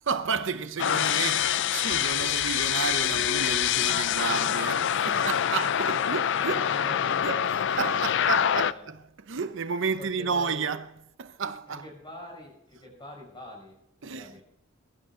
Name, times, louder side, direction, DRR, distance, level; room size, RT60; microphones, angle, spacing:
voice 1, 0.0-6.7 7.2-11.9 14.0-14.4, right 5 dB, 65° right, 0.7 m, -32 dB
sound 1, 0.8-8.7, left 9 dB, 60° left, 0.4 m, -25 dB
voice 2, 5.9-8.9 10.0-10.7 11.4-14.4, left 1 dB, 25° left, 5.9 m, -44 dB
22.0 x 12.0 x 3.7 m
head